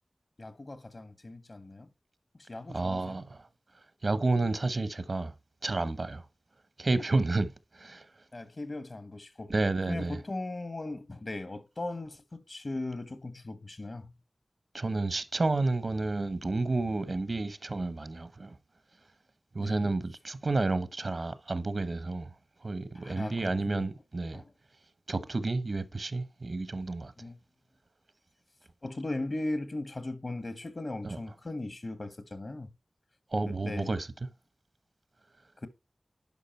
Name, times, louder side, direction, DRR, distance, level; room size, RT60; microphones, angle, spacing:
voice 1, 0.4-1.9 2.5-3.2 8.3-9.5 9.9-14.1 19.6-19.9 23.0-23.8 24.3-24.5 27.2-27.4 28.8-32.7 33.4-33.9, left 2 dB, 60° left, 1.4 m, -38 dB
voice 2, 2.7-3.4 4.0-5.3 5.6-6.2 6.8-7.5 7.8-8.0 9.5-10.2 14.7-18.5 19.5-22.3 22.6-24.4 25.1-27.1 31.0-31.2 33.3-34.1, right 3 dB, 65° right, 0.9 m, -30 dB
11.0 x 5.1 x 4.4 m
wide cardioid pair, 50°, 0 cm